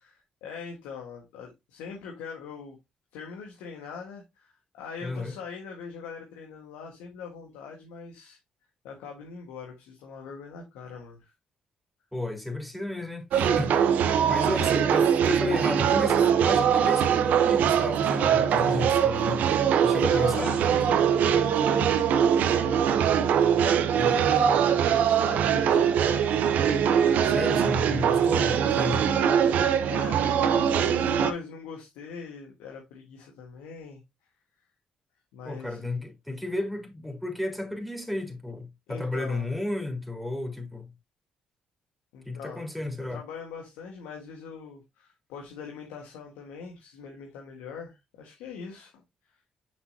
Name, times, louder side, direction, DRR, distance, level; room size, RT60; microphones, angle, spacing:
voice 1, 0.0-2.8 3.1-8.4 8.8-11.3 14.1-14.5 19.9-23.0 23.5-23.8 24.2-24.6 25.2-26.6 29.9-30.3 30.6-34.0 35.3-35.8 38.9-39.5 42.1-42.7 43.1-49.0, left 6 dB, 80° left, 1.5 m, -42 dB
voice 2, 5.0-5.3 12.1-14.0 14.3-19.4 19.8-20.6 23.9-24.6 27.2-29.0 35.4-40.8 42.2-43.2, left 2 dB, ahead, 3.3 m, -33 dB
sound 1, 13.3-31.3, right 8 dB, 70° right, 0.8 m, -22 dB
6.9 x 6.1 x 2.7 m
hypercardioid pair, 50°, 3 cm